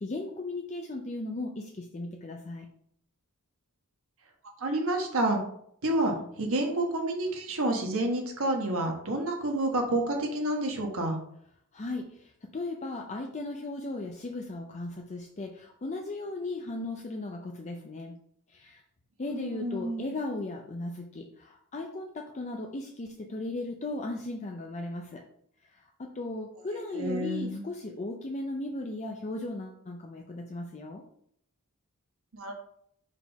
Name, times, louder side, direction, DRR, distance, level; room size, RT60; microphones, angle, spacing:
voice 1, 0.0-2.7 11.7-18.2 18.5-18.8 19.2-25.2 25.7-31.0, left 2 dB, 30° left, 2 dB, 0.5 m, -37 dB
voice 2, 4.6-5.4 5.8-11.2 19.3-20.1 26.9-27.6 32.3-32.5, right 1 dB, 65° right, 2 dB, 1.3 m, -29 dB
5.0 x 3.7 x 5.6 m, 0.69 s
head